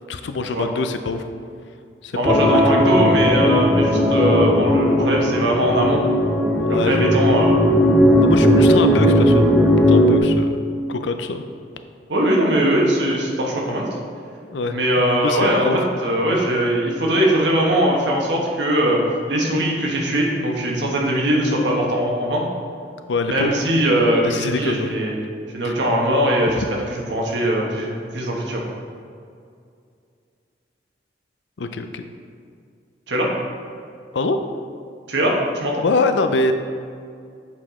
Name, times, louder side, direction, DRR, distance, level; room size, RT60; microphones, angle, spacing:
voice 1, 0.1-1.3 2.0-3.1 6.6-7.2 8.2-9.5 9.9-10.6 10.9-11.4 14.5-14.8 15.2-15.8 23.1-23.5 24.2-25.0 25.6-25.7 31.6-32.0 34.1-34.4 35.8-36.5, left 3 dB, 85° left, 8 dB, 0.5 m, -24 dB
voice 2, 2.1-6.0 6.7-7.6 12.1-13.9 14.7-19.0 19.3-22.4 23.3-25.2 25.5-26.6 26.9-28.6 33.1-33.3 35.1-35.8, right 1 dB, 80° right, -1 dB, 1.2 m, -20 dB
sound 1, 2.3-10.2, equal, ahead, 0.5 m, -16 dB
7.5 x 4.8 x 3.6 m, 2.3 s
head